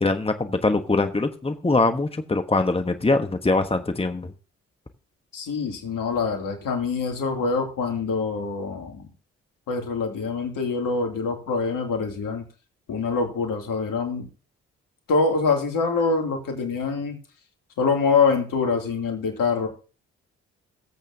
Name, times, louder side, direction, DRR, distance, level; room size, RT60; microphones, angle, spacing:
voice 1, 0.0-4.3, left 3 dB, 15° left, 7 dB, 1.3 m, -23 dB
voice 2, 5.3-9.1 9.7-12.4 12.9-14.3 15.1-17.2 17.8-19.7, left 4 dB, 65° left, 3 dB, 2.8 m, -25 dB
16.5 x 8.3 x 2.8 m, 0.35 s
hypercardioid pair, 40°, 35 cm